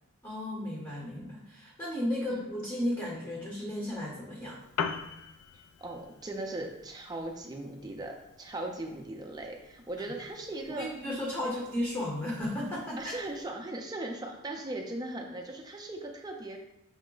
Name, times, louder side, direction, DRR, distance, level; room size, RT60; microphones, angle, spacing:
voice 1, 0.2-4.6 10.7-13.1, left 1 dB, 15° left, -4 dB, 0.7 m, -34 dB
Piano, 4.5-13.5, left 6 dB, 80° left, 0.3 m, -44 dB
voice 2, 5.8-10.9 11.4-11.5 13.0-16.6, right 2 dB, 20° right, 2 dB, 0.4 m, -38 dB
5.6 x 2.1 x 3.7 m, 0.85 s
head